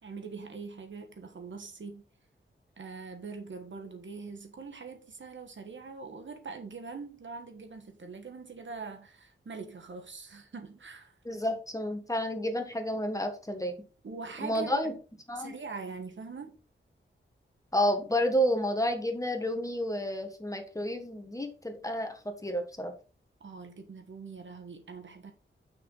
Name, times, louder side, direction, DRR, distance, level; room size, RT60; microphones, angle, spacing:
voice 1, 0.0-2.0 2.8-11.1 14.0-14.9 15.3-16.5 23.4-25.3, right 4 dB, 65° right, 1.5 m, -43 dB
voice 2, 11.2-13.7 14.4-14.9 15.3-15.5 17.7-22.9, equal, 15° left, 1.6 m, -30 dB
8.8 x 6.1 x 4.0 m
wide cardioid pair, 110°, 21 cm